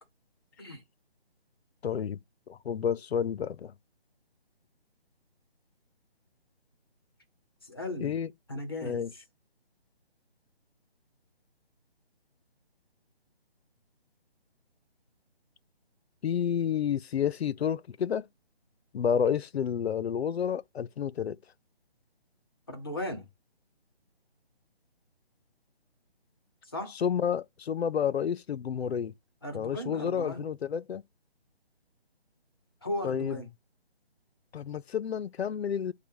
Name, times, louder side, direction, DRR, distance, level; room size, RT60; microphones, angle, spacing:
voice 1, 1.8-2.2 2.5-3.7 8.0-8.3 8.8-9.1 16.2-18.3 18.9-21.4 27.0-29.1 29.5-31.0 33.0-33.4 34.5-35.9, left 8 dB, 80° left, 0.5 m, -30 dB
voice 2, 7.6-8.2 8.5-9.1 22.7-23.3 26.6-27.0 29.4-30.4 32.8-33.5, left 1 dB, 25° left, 0.8 m, -36 dB
5.3 x 2.2 x 4.6 m
hypercardioid pair, 175°, 31 cm